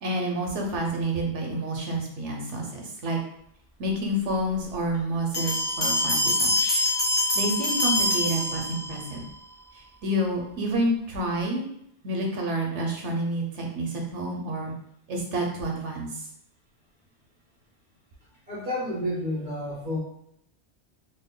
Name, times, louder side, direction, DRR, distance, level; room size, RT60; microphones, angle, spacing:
voice 1, 0.0-3.2 3.8-9.3 9.7-11.7 12.0-14.7 15.1-16.2, right 1 dB, 85° right, 1 dB, 1.1 m, -29 dB
sound 1, 5.3-9.1, left 1 dB, 25° left, 0.8 m, -25 dB
voice 2, 18.5-20.0, left 1 dB, 35° right, -8 dB, 1.2 m, -30 dB
3.1 x 2.2 x 3.6 m, 0.72 s
omnidirectional pair, 1.2 m